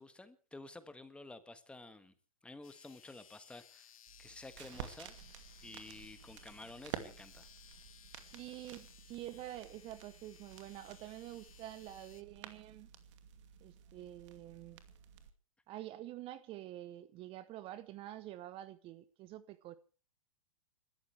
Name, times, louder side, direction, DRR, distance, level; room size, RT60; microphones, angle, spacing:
voice 1, 0.0-2.1 2.4-3.9 4.2-5.1 5.6-7.5, left 2 dB, 5° left, 1.5 m, -52 dB
sound 1, 2.6-12.2, left 10 dB, 75° left, 1.3 m, -61 dB
sound 2, 4.1-15.3, right 10 dB, 60° right, 2.4 m, -51 dB
voice 2, 8.3-12.9 13.6-14.8 15.7-19.7, right 14 dB, 30° right, 0.9 m, -47 dB
30.0 x 13.5 x 3.4 m
hypercardioid pair, 125°, 18 cm